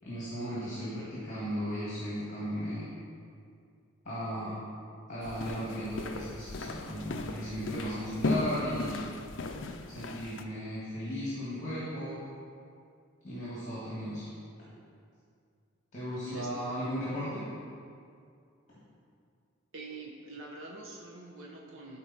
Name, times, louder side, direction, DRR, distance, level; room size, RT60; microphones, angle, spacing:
voice 1, 0.0-2.9 4.0-4.6 5.1-9.1 9.9-12.2 13.2-14.3 15.9-17.4, equal, 35° left, -9 dB, 2.2 m, -36 dB
sound 1, 5.2-10.4, left 2 dB, 60° left, 0.5 m, -36 dB
voice 2, 16.1-16.5 19.7-22.0, right 2 dB, 75° right, -2 dB, 1.2 m, -45 dB
12.0 x 4.6 x 4.3 m, 2.3 s
head